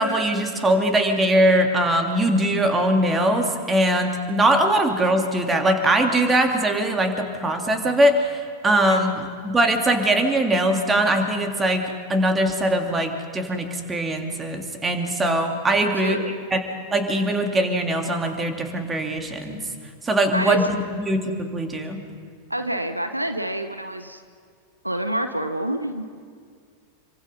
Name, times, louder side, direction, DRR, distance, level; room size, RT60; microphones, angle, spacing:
voice 1, 0.0-16.2 16.5-16.6 16.9-19.7 20.0-22.0, right 1 dB, 15° right, 4 dB, 2.9 m, -21 dB
voice 2, 16.0-16.4 20.3-20.6 22.5-24.2 24.8-26.0, right 1 dB, 85° right, 8 dB, 1.1 m, -27 dB
27.5 x 24.5 x 5.6 m, 2.1 s
figure-of-eight pair, 90°, 0 cm